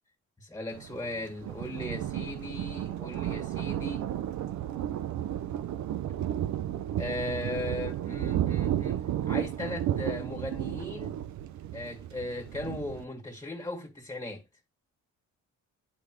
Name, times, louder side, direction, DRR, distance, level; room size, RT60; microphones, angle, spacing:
voice 1, 0.4-4.1 7.0-11.3 11.7-14.4, left 1 dB, 15° left, 2.0 m, -37 dB
Thunder, 0.7-13.0, right 11 dB, 70° right, 0.7 m, -33 dB
10.5 x 3.5 x 3.2 m
cardioid pair, 90°, 30 cm